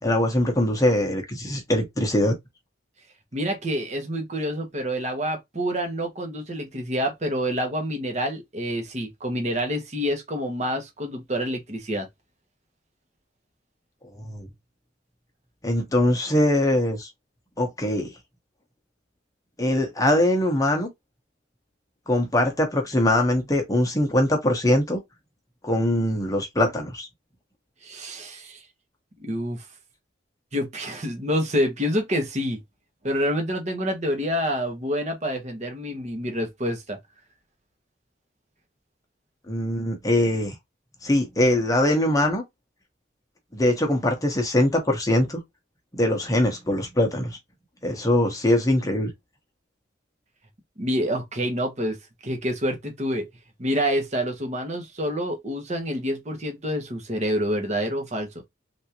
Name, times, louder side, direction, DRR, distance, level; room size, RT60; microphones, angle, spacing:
voice 1, 0.0-2.4 14.2-14.5 15.6-17.1 17.6-18.1 19.6-20.9 22.1-25.0 25.6-27.1 39.5-40.6 41.0-42.4 43.5-45.4 45.9-47.4 47.8-49.1, left 1 dB, 20° left, 0.9 m, -22 dB
voice 2, 3.3-12.1 27.8-28.6 29.2-29.6 30.5-32.6 33.0-37.0 50.8-52.0 52.2-53.3 53.6-58.3, equal, 35° right, 1.0 m, -27 dB
3.5 x 2.6 x 2.9 m
head